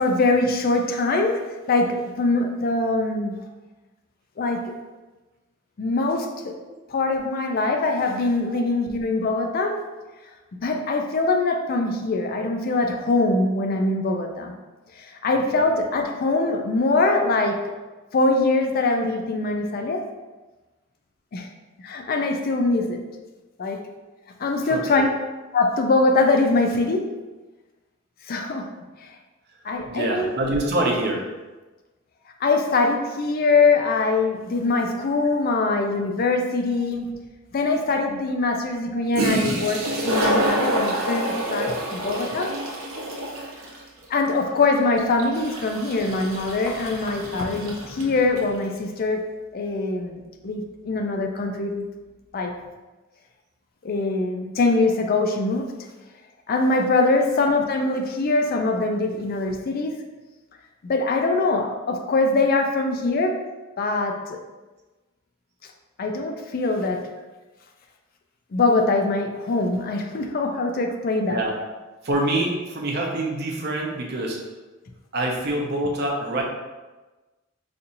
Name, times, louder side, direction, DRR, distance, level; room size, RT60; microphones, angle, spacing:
voice 1, 0.0-1.4 1.7-3.4 4.4-4.7 5.8-6.6 6.9-9.8 10.6-14.5 15.0-17.6 18.1-20.0 21.3-21.5 21.8-23.0 23.6-23.8 24.4-25.1 25.5-27.0 28.3-28.7 29.0-29.1 29.6-30.4 32.4-37.1 37.5-42.5 44.1-49.2 49.5-51.9 52.3-52.5 53.8-55.7 56.5-60.0 60.8-63.4 63.8-64.4 66.0-67.1 68.5-71.4, left 3 dB, 45° left, 4 dB, 0.4 m, -23 dB
voice 2, 24.6-25.1 29.9-31.2 39.6-39.7 71.3-71.5 72.0-74.4 75.1-76.4, right 1 dB, 50° right, -1 dB, 0.6 m, -25 dB
Toilet flush, 37.1-37.2 38.8-38.9 39.1-48.5, right 1 dB, 85° right, 0.8 m, -27 dB
4.2 x 2.6 x 2.6 m, 1.2 s
head